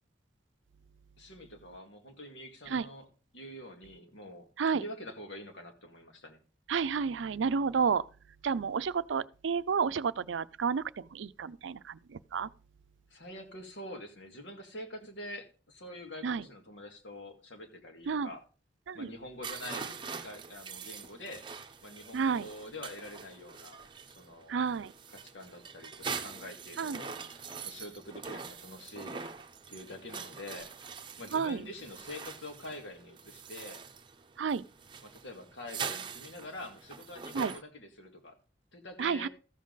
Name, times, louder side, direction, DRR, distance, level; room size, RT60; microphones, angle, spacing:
voice 1, 1.2-3.1 3.3-6.4 13.1-18.4 18.9-21.5 21.8-24.6 25.1-29.3 29.7-30.7 31.2-33.9 35.0-38.4 38.7-39.3, left 1 dB, 80° left, 2.1 m, -46 dB
voice 2, 6.7-8.0 8.4-12.5 16.2-16.5 18.1-18.3 18.9-19.1 22.1-22.5 24.5-24.9 26.8-27.0 31.3-31.6 34.4-34.6 37.3-37.5 39.0-39.3, right 6 dB, 85° right, 0.5 m, -31 dB
sound 1, 19.4-37.6, right 6 dB, 25° right, 0.8 m, -44 dB
14.0 x 7.3 x 4.0 m
head